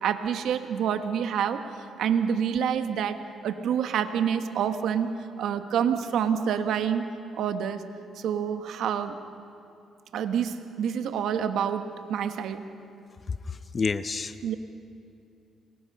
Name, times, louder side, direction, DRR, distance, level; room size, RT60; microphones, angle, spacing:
voice 1, 0.0-7.1 7.4-7.9 8.1-9.2 10.1-12.6 14.4-14.6, right 8 dB, 75° right, 8 dB, 1.3 m, -27 dB
voice 2, 13.5-14.5, left 4 dB, 35° left, 12 dB, 0.6 m, -30 dB
27.5 x 23.0 x 5.5 m, 2.5 s
cardioid pair, 90°, 0 cm